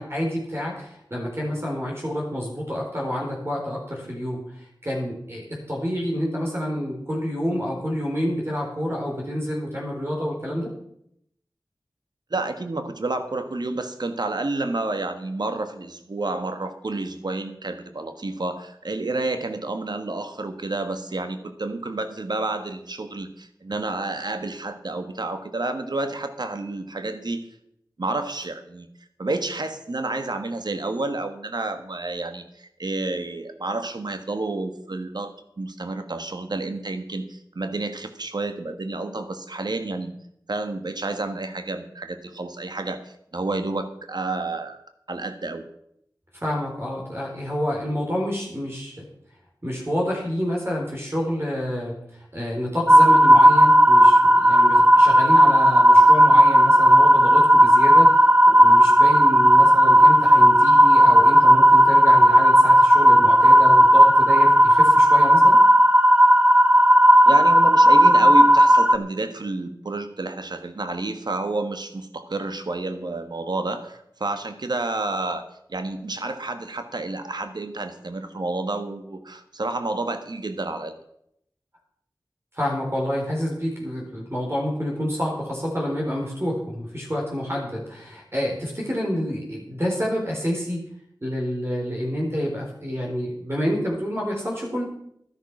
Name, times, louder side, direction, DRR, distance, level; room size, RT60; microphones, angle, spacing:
voice 1, 0.0-10.7 46.3-49.0 49.6-51.9 52.3-65.6 82.5-90.8 91.2-94.8, equal, 35° right, -2 dB, 4.0 m, -28 dB
voice 2, 12.3-27.5 28.0-28.9 29.2-40.1 40.5-44.8 45.1-45.6 67.3-75.4 75.7-80.9, right 2 dB, 65° right, 8 dB, 1.4 m, -30 dB
sound 1, 52.9-69.0, equal, 15° right, 0.7 m, -14 dB
12.5 x 10.5 x 6.0 m, 0.73 s
wide cardioid pair, 50°, 8 cm